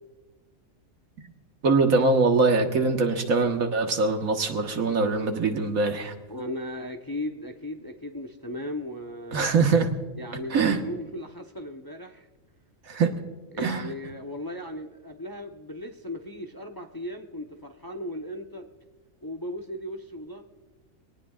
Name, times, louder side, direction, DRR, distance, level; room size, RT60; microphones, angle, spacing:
voice 1, 1.6-6.1 9.3-9.9 10.5-10.8 12.9-13.1 13.6-13.9, right 4 dB, 85° right, 4 dB, 1.8 m, -23 dB
voice 2, 6.3-9.5 10.2-12.3 13.5-18.7 19.2-20.4, left 1 dB, 20° left, 3 dB, 0.7 m, -37 dB
22.5 x 18.5 x 2.4 m, 1.3 s
omnidirectional pair, 1.4 m